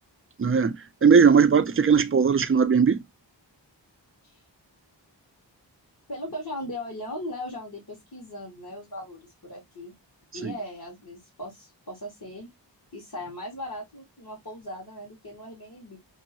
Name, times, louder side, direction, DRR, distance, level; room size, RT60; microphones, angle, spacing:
voice 1, 0.4-3.0 10.4-10.5, right 6 dB, 30° right, 0.4 m, -19 dB
voice 2, 6.1-9.9 10.3-12.5 12.9-16.0, left 1 dB, 50° left, 1.3 m, -38 dB
2.7 x 2.4 x 2.7 m
wide cardioid pair, 45°, 45 cm